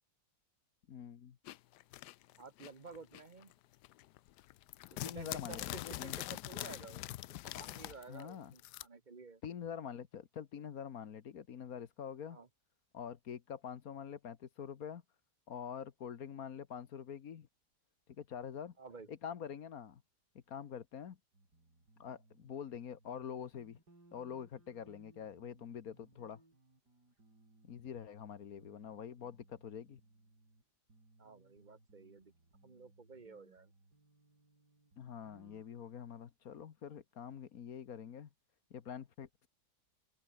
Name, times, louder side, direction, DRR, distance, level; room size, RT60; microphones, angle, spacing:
voice 1, 0.9-1.4 5.0-6.2 8.1-8.5 9.4-12.4 12.9-15.0 15.5-17.5 18.1-18.7 19.1-20.0 20.5-21.2 22.0-23.8 24.1-26.4 27.6-30.0 35.0-38.3 38.7-39.5, left 8 dB, 60° left, 1.6 m, -46 dB
sound 1, 1.5-3.5 3.8-8.8, left 16 dB, 80° left, 1.2 m, -44 dB
voice 2, 2.4-3.5 5.0-7.1 7.4-9.4 12.3-12.5 18.8-19.1 31.2-32.3 32.6-33.7, right 4 dB, 30° right, 1.5 m, -52 dB
sound 2, 21.3-22.5 22.9-27.9 28.2-30.6 30.9-35.6, right 2 dB, 75° right, 7.3 m, -66 dB
open air
omnidirectional pair, 1.8 m